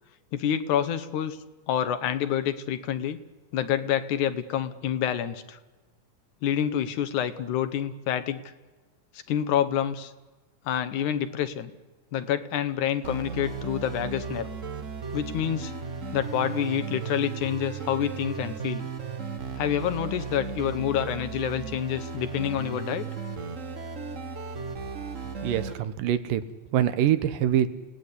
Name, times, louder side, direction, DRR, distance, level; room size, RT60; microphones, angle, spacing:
voice 1, 0.3-1.4 1.7-3.2 3.5-5.6 6.4-8.4 9.3-10.1 10.7-11.7 12.1-14.5 15.1-15.7 16.1-18.9 19.6-23.1, left 10 dB, 70° left, 12 dB, 2.4 m, -27 dB
sound 1, 13.0-25.7, right 5 dB, 65° right, 0.7 m, -35 dB
voice 2, 25.4-26.4 26.7-27.7, right 11 dB, 90° right, 12 dB, 2.8 m, -24 dB
29.0 x 18.0 x 9.8 m, 1.2 s
omnidirectional pair, 3.8 m